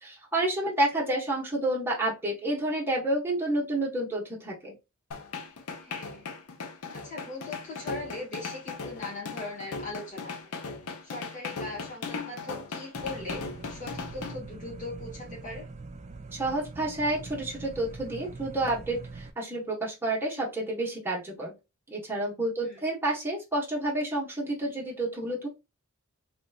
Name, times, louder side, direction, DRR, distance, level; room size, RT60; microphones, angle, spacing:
voice 1, 0.0-4.7 16.3-21.5 21.9-25.5, right 1 dB, 10° right, 1.1 m, -29 dB
sound 1, 5.1-14.3, left 4 dB, 85° left, 0.7 m, -38 dB
voice 2, 5.8-6.2 6.9-10.5 11.0-15.7 22.6-22.8, left 2 dB, 35° left, 1.5 m, -40 dB
sound 2, 13.0-19.3, right 3 dB, 30° right, 0.4 m, -43 dB
3.2 x 3.0 x 2.3 m
head